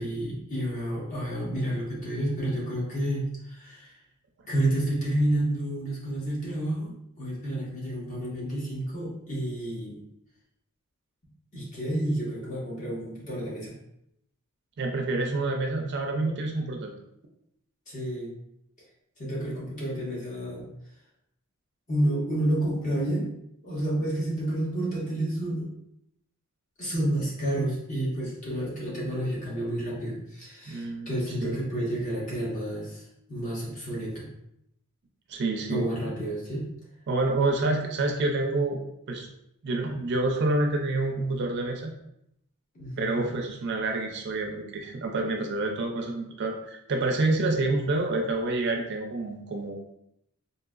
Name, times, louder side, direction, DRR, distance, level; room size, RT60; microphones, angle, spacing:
voice 1, 0.0-3.9 4.5-10.0 11.5-13.8 17.9-18.3 19.2-20.6 21.9-23.3 23.6-25.7 26.8-33.0 33.3-34.3 35.7-36.7 42.7-43.2, right 1 dB, 35° left, -5 dB, 1.1 m, -30 dB
voice 2, 14.8-16.9 30.7-31.1 31.4-31.6 35.3-35.9 37.1-38.8 39.1-39.3 39.6-41.9 43.0-49.8, right 2 dB, 50° right, 2 dB, 0.4 m, -28 dB
3.8 x 2.7 x 2.4 m, 0.77 s
head